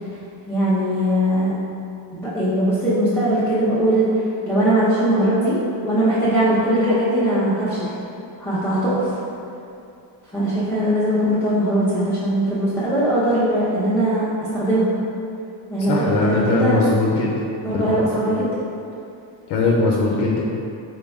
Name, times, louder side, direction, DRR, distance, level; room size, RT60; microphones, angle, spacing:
voice 1, 0.5-1.5 2.1-4.2 4.4-7.9 8.4-9.2 10.3-14.2 14.5-14.9 15.7-16.8 17.6-18.5, right 1 dB, 5° left, -11 dB, 0.3 m, -20 dB
voice 2, 15.9-17.3 17.7-18.5 19.5-20.4, left 3 dB, 60° left, -3 dB, 0.5 m, -20 dB
4.2 x 2.0 x 3.4 m, 2.6 s
cardioid pair, 140°, 49 cm